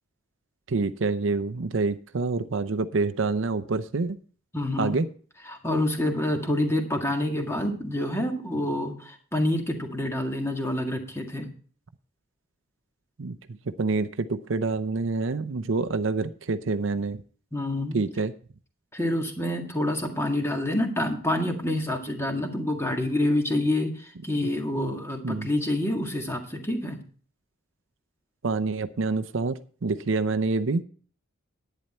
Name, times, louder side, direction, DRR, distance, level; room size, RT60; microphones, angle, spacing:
voice 1, 0.7-4.2 4.8-5.1 13.2-13.4 13.8-17.2 17.9-18.3 24.4-24.5 24.8-24.9 25.2-25.5 28.4-30.8, right 3 dB, 65° right, 11 dB, 0.6 m, -27 dB
voice 2, 4.5-5.0 5.5-11.5 17.5-18.0 18.9-27.0, left 1 dB, 15° left, 3 dB, 1.9 m, -27 dB
11.0 x 9.4 x 4.3 m, 0.43 s
head